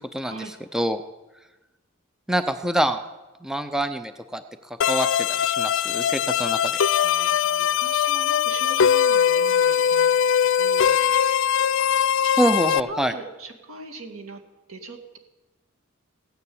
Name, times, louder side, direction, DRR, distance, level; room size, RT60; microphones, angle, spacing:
voice 1, 0.2-0.5 7.0-11.0 12.2-12.4 12.7-14.4 14.7-15.2, right 2 dB, 85° right, 4 dB, 2.1 m, -40 dB
voice 2, 2.3-3.0 3.4-6.8 12.4-13.1, right 1 dB, 5° right, 9 dB, 0.6 m, -25 dB
sound 1, 4.8-12.8, left 8 dB, 65° left, 0.4 m, -21 dB
16.0 x 9.7 x 8.6 m, 1.1 s
head